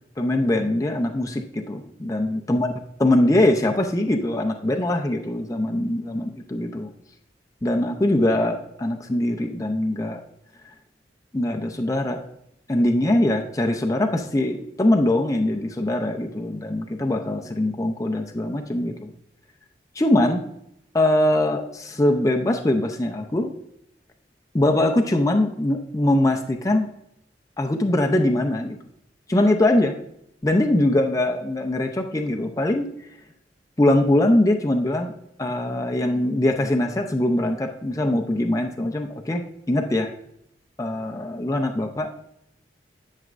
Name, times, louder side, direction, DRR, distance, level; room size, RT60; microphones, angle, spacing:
voice 1, 0.2-2.7 3.0-6.9 7.6-10.2 11.3-12.2 12.7-19.1 20.0-20.4 20.9-23.5 24.5-26.9 27.6-28.8 29.3-29.9 30.4-32.9 33.8-35.1 35.4-40.1 40.8-42.1, left 1 dB, 20° left, 2 dB, 0.5 m, -22 dB
11.0 x 6.4 x 2.5 m, 0.76 s
head